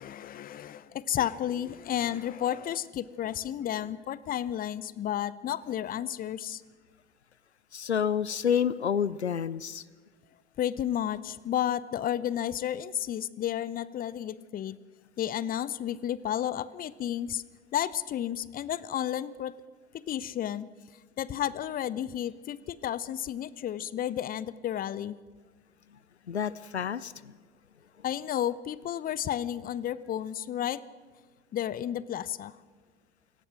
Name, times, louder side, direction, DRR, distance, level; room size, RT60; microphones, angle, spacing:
voice 1, 0.0-6.6 10.6-14.8 15.2-17.4 17.7-19.5 19.9-20.7 21.2-25.2 28.0-30.8 31.5-32.5, left 11 dB, 25° left, 19 dB, 0.8 m, -32 dB
voice 2, 7.7-9.8 26.3-27.1, left 8 dB, 85° left, 20 dB, 0.6 m, -28 dB
27.0 x 18.5 x 6.1 m, 1.5 s
figure-of-eight pair, 75°, 32 cm